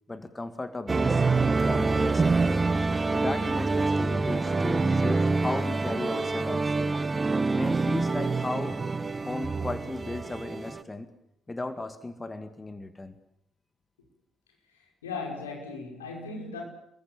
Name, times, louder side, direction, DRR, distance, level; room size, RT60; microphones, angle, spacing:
voice 1, 0.1-2.6 3.1-7.0 7.6-8.8 9.2-11.1 11.5-13.1, left 2 dB, 20° left, 10 dB, 2.1 m, -36 dB
sound 1, 0.9-10.8, right 3 dB, 25° right, 1.3 m, -26 dB
voice 2, 14.7-16.6, left 4 dB, 75° left, 1 dB, 5.6 m, -37 dB
29.0 x 22.0 x 7.3 m, 0.77 s
figure-of-eight pair, 45°, 0 cm